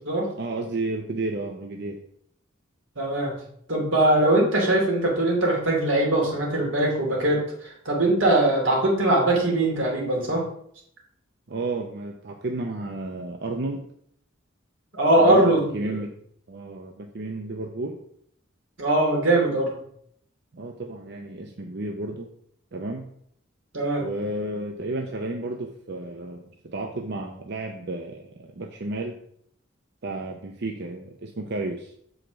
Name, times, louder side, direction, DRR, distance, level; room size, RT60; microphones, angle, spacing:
voice 1, 0.4-2.0 11.5-13.8 15.2-16.1 16.5-18.0 20.5-22.3 22.7-23.1 24.0-29.2 30.0-31.9, right 2 dB, 60° right, 3 dB, 0.7 m, -32 dB
voice 2, 3.0-3.3 3.7-10.4 14.9-16.0 18.8-19.7 23.7-24.0, right 1 dB, 90° right, -1 dB, 2.7 m, -21 dB
7.5 x 5.0 x 5.0 m, 0.67 s
head